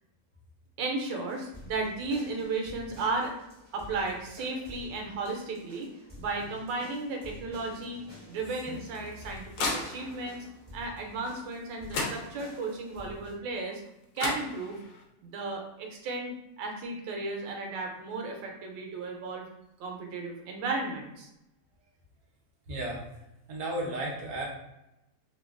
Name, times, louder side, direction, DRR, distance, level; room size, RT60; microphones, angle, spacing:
voice 1, 0.8-3.3 3.7-5.9 6.2-8.0 8.3-10.5 10.7-13.8 14.1-14.8 15.2-19.5 19.8-21.3, right 3 dB, 90° right, 1 dB, 1.3 m, -34 dB
sound 1, 1.3-13.4, left 1 dB, 15° left, 1.0 m, -49 dB
sound 2, 8.7-10.4 11.5-11.6 11.9-12.7 13.9-14.0 14.2-15.0, left 3 dB, 85° left, 1.3 m, -35 dB
voice 2, 22.7-23.0 23.5-24.5, right 1 dB, 65° right, -2 dB, 1.2 m, -33 dB
3.3 x 2.2 x 2.4 m, 0.85 s
omnidirectional pair, 1.9 m